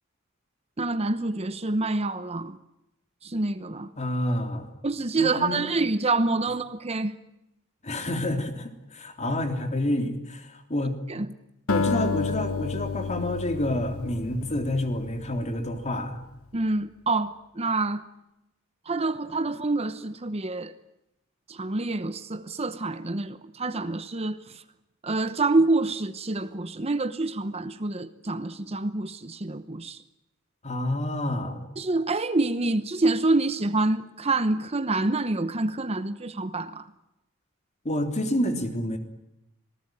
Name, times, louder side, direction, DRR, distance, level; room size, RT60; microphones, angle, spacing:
voice 1, 0.8-2.6 3.2-3.9 4.8-7.2 11.1-11.3 16.5-18.0 18.9-20.7 21.5-24.6 25.0-30.0 31.8-36.9, right 2 dB, 30° right, 0.9 m, -27 dB
voice 2, 4.0-4.7 5.2-5.6 7.8-11.0 11.7-16.2 30.6-31.6 37.9-39.0, left 1 dB, 35° left, 3.5 m, -28 dB
Acoustic guitar, 11.7-16.1, left 4 dB, 85° left, 1.1 m, -31 dB
26.5 x 19.5 x 9.3 m
head